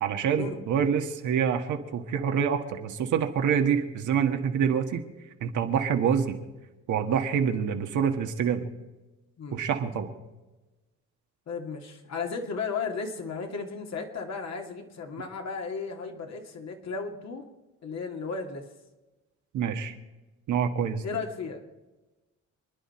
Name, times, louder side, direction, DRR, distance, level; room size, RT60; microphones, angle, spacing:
voice 1, 0.0-5.0 5.4-6.4 6.9-8.7 9.5-10.1 19.5-19.9 20.5-21.0, right 7 dB, 75° right, 5 dB, 1.7 m, -26 dB
voice 2, 11.5-17.5 17.8-18.6 21.0-21.6, left 5 dB, 60° left, 3 dB, 2.5 m, -34 dB
28.0 x 10.5 x 4.4 m, 1.1 s
cardioid pair, 90°, 30 cm